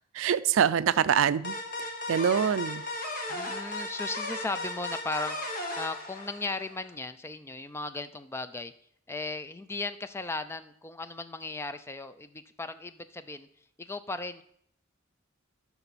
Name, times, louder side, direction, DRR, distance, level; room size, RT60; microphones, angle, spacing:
voice 1, 0.1-1.6 2.1-2.8, right 8 dB, 75° right, 17 dB, 0.4 m, -24 dB
sound 1, 1.4-6.9, left 2 dB, 40° left, 1.4 m, -36 dB
voice 2, 3.3-8.7 9.1-13.5 13.8-14.4, left 3 dB, 10° left, 12 dB, 0.3 m, -37 dB
11.0 x 5.8 x 4.1 m, 0.68 s
head